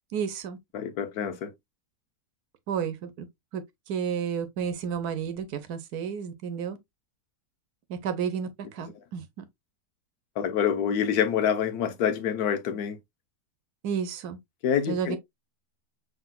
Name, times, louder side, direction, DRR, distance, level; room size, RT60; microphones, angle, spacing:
voice 1, 0.1-0.6 2.7-3.3 3.5-6.8 7.9-9.4 13.8-14.4 14.9-15.2, right 7 dB, 80° right, 1.3 m, -31 dB
voice 2, 0.7-1.5 10.4-13.0 14.6-15.2, left 8 dB, 80° left, 1.3 m, -26 dB
5.7 x 3.3 x 2.2 m
omnidirectional pair, 1.7 m